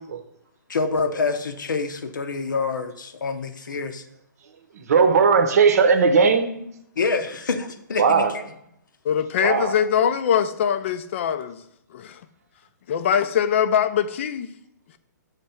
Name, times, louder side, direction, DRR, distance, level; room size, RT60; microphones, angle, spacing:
voice 1, 0.7-4.0 6.5-6.7 7.0-8.5, left 4 dB, 85° left, 0.8 m, -27 dB
voice 2, 4.9-6.4 8.0-8.3 9.4-9.7, right 5 dB, 55° right, 0.8 m, -17 dB
voice 3, 9.0-11.6 11.9-12.2 12.9-14.5, left 8 dB, 40° left, 0.4 m, -22 dB
7.1 x 3.3 x 5.7 m
hypercardioid pair, 155°, 10 cm